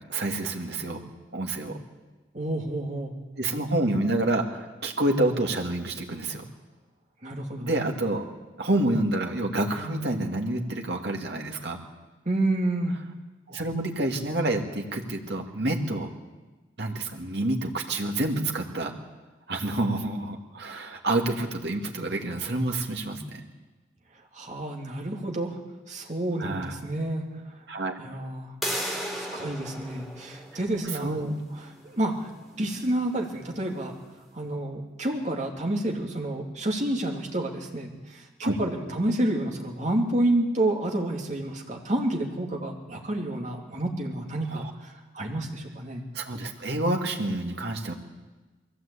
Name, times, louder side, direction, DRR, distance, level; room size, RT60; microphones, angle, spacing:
voice 1, 0.1-1.0 1.3-1.8 3.4-6.5 7.6-8.3 8.6-11.8 13.5-16.1 16.8-18.9 19.5-23.4 26.4-26.8 27.7-28.0 30.9-31.3 38.4-38.6 44.5-44.7 46.1-47.9, right 1 dB, 65° right, 2 dB, 2.3 m, -28 dB
voice 2, 2.3-3.1 7.2-7.7 12.3-12.9 24.3-25.6 25.9-27.2 28.0-28.5 29.1-32.3 32.6-34.0 34.3-46.0, right 1 dB, 40° right, 1 dB, 2.6 m, -29 dB
sound 1, 28.6-34.2, equal, ahead, 2.9 m, -37 dB
22.0 x 15.5 x 8.4 m, 1.2 s
head